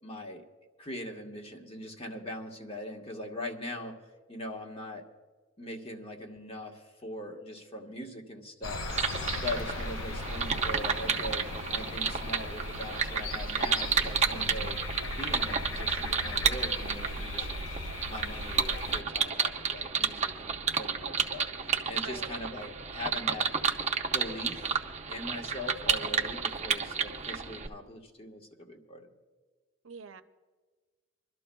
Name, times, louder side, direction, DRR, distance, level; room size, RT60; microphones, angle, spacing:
voice 1, 0.0-0.4 0.8-4.0 4.3-5.0 5.6-8.8 9.4-14.8 15.2-17.6 18.1-21.5 21.9-23.5 24.1-24.8 25.1-29.1, left 1 dB, 30° left, 1 dB, 1.3 m, -41 dB
sound 1, 8.6-19.0, left 2 dB, 80° left, 0.8 m, -37 dB
sound 2, 8.9-27.7, right 6 dB, 35° right, 0.7 m, -31 dB
voice 2, 14.3-14.9 22.0-22.4 29.8-30.2, right 5 dB, 80° right, 10 dB, 0.7 m, -46 dB
26.5 x 12.5 x 2.3 m, 1.4 s
head